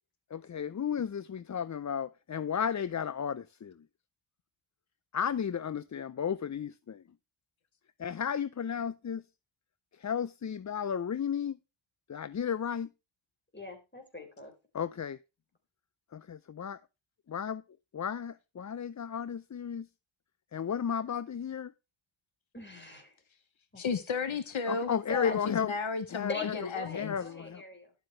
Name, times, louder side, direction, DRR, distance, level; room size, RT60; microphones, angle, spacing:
voice 1, 0.3-3.7 5.1-7.0 8.0-9.2 10.0-11.6 12.1-12.9 14.7-15.2 16.1-16.8 17.3-17.6 17.9-19.9 20.5-21.7 24.7-25.7 26.1-26.3 26.9-27.6, left 7 dB, 40° left, 0.5 m, -33 dB
voice 2, 13.5-14.5 22.5-23.2 23.7-23.9 24.7-25.4 26.3-27.9, left 1 dB, 25° left, 3.6 m, -41 dB
voice 3, 23.8-24.9 25.2-27.1, left 5 dB, 75° left, 1.1 m, -33 dB
11.5 x 7.7 x 3.2 m
wide cardioid pair, 75°, 47 cm